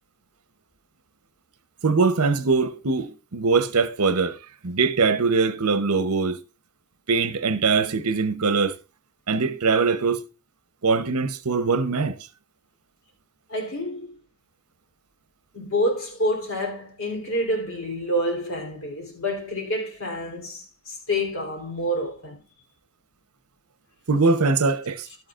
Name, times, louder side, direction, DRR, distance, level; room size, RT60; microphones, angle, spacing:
voice 1, 1.8-4.4 4.6-6.4 7.1-8.8 9.3-10.2 10.8-12.1 24.1-25.1, right 4 dB, 80° right, 0.9 m, -22 dB
voice 2, 13.5-14.1 15.5-22.4, equal, 65° left, 3.4 m, -28 dB
12.0 x 9.5 x 2.5 m
head